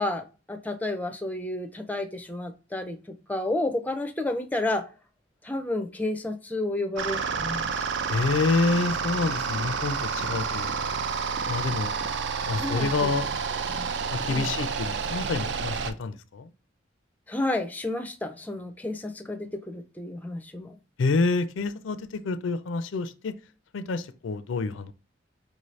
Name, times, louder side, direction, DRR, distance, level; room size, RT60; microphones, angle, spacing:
voice 1, 0.0-3.0 3.3-4.9 5.4-7.9 12.5-12.9 13.7-13.8 14.3-14.5 17.3-20.8, left 2 dB, 10° left, 0.4 m, -31 dB
sound 1, 7.0-15.9, right 5 dB, 65° right, 0.4 m, -29 dB
voice 2, 8.1-11.0 11.5-11.9 12.5-13.3 14.1-16.5 21.0-23.3 23.7-24.9, left 3 dB, 85° left, 0.4 m, -28 dB
5.1 x 2.7 x 3.1 m
head